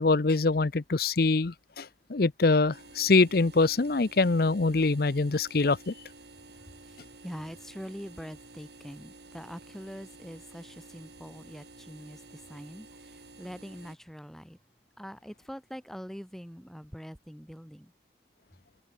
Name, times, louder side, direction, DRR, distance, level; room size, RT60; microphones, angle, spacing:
voice 1, 0.0-5.9, left 3 dB, 55° left, 0.7 m, -24 dB
sound 1, 2.7-14.0, right 2 dB, 60° right, 5.8 m, -52 dB
voice 2, 7.2-14.6 15.0-17.9, equal, ahead, 3.6 m, -44 dB
head